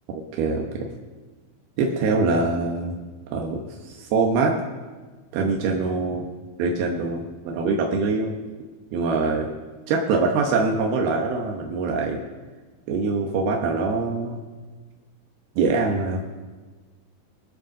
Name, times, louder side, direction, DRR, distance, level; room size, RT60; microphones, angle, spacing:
voice 1, 0.3-0.9 1.8-3.0 3.3-4.6 5.3-6.3 6.6-8.3 8.9-9.5 9.9-12.2 12.9-14.4 15.6-16.2, right 4 dB, 90° right, 0 dB, 3.1 m, -24 dB
22.0 x 7.6 x 6.5 m, 1.4 s
omnidirectional pair, 4.3 m